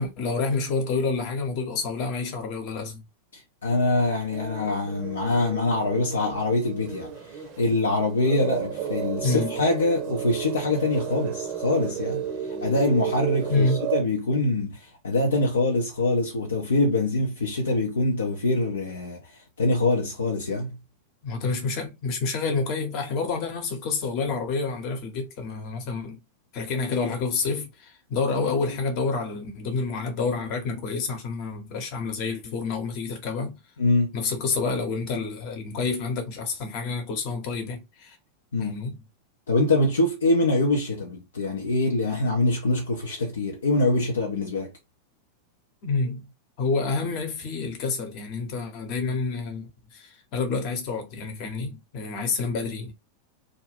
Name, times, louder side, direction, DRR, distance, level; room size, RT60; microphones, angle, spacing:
voice 1, 0.0-3.0 9.2-9.5 13.5-13.9 21.2-26.2 26.5-33.6 34.1-38.2 38.6-39.0 45.8-46.3 46.6-52.9, left 4 dB, 40° left, 0.9 m, -28 dB
voice 2, 3.3-20.8 33.8-34.1 38.5-38.8 39.5-44.7, left 2 dB, 70° left, 0.5 m, -24 dB
sound 1, 4.3-7.8 8.2-14.0, right 8 dB, 45° right, 0.7 m, -32 dB
2.4 x 2.1 x 3.3 m
figure-of-eight pair, 90°, 0 cm